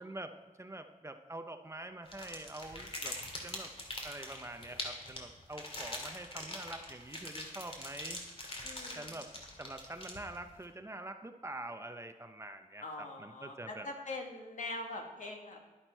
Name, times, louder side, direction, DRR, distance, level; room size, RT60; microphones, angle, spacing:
voice 1, 0.0-3.2 3.4-3.7 4.0-8.2 8.9-13.9, right 2 dB, 20° right, 7 dB, 0.6 m, -45 dB
sound 1, 2.1-10.5, left 1 dB, 40° left, 2.3 m, -43 dB
voice 2, 8.6-9.0 12.8-15.6, left 2 dB, 60° left, 2 dB, 1.8 m, -42 dB
12.0 x 10.5 x 4.5 m, 1.3 s
wide cardioid pair, 140°, 15 cm